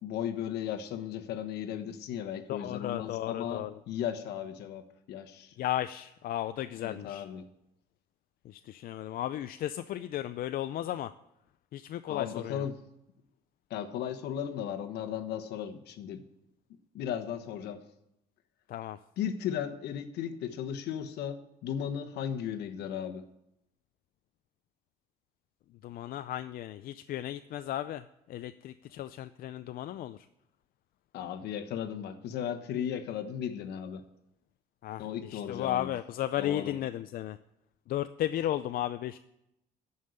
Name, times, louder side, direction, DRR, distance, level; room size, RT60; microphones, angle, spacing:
voice 1, 0.0-5.5 6.8-7.5 12.1-12.8 13.7-16.2 16.9-17.8 19.2-23.3 31.1-34.0 35.0-35.9 36.4-36.7, left 9 dB, 75° left, 8 dB, 1.2 m, -36 dB
voice 2, 2.5-3.8 5.6-7.2 8.4-11.1 11.7-12.6 18.7-19.0 25.8-30.3 34.8-37.4 37.9-39.2, left 12 dB, 60° left, 11 dB, 0.5 m, -35 dB
14.0 x 5.6 x 9.5 m, 0.84 s
cardioid pair, 110°, 17 cm